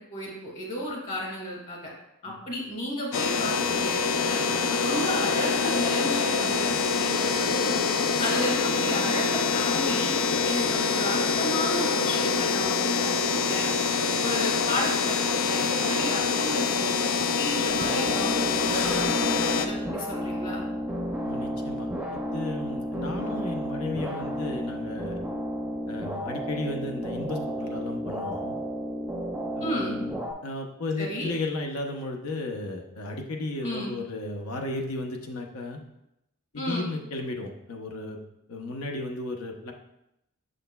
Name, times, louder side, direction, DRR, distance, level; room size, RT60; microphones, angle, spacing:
voice 1, 0.1-1.9 2.2-4.4 4.8-7.8 8.2-10.1 10.4-13.7 14.2-17.1 17.3-19.1 19.6-20.6 29.6-30.0 31.0-31.3 33.6-33.9 36.6-36.9, equal, 40° left, -2 dB, 2.1 m, -33 dB
sound 1, 3.1-19.7, left 5 dB, 70° left, 0.5 m, -25 dB
sound 2, 17.7-30.3, equal, 5° right, 0.5 m, -32 dB
voice 2, 21.2-25.2 25.9-28.6 29.5-30.2 30.4-35.8 36.5-38.2 38.5-39.7, left 2 dB, 85° left, 2 dB, 0.9 m, -34 dB
6.7 x 6.2 x 2.3 m, 0.84 s
head